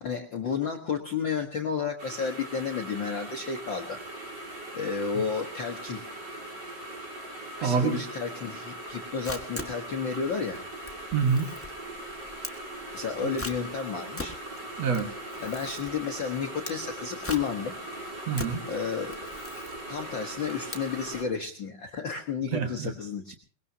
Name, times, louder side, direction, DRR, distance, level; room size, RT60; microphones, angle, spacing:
voice 1, 0.0-4.0 4.7-6.0 7.6-10.6 12.9-14.3 15.4-17.7 18.6-19.3 19.9-23.4, left 6 dB, 55° left, 2 dB, 1.3 m, -32 dB
sound 1, 2.0-21.2, right 1 dB, 35° right, 3.6 m, -40 dB
voice 2, 7.6-8.0 11.1-11.5 14.8-15.1 18.3-18.6 22.5-22.9, right 6 dB, 60° right, 6 dB, 2.5 m, -26 dB
Camera, 8.9-21.3, left 2 dB, 15° left, 0.4 m, -42 dB
23.0 x 20.0 x 2.8 m, 0.41 s
omnidirectional pair, 3.7 m